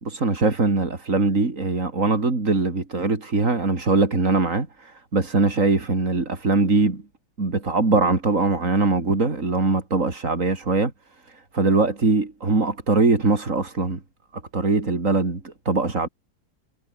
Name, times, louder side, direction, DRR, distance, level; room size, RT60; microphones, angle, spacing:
voice 1, 0.0-7.0 7.4-10.9 11.3-14.0 14.3-16.1, right 3 dB, 50° right, 3.7 m, -22 dB
omnidirectional pair, 1.7 m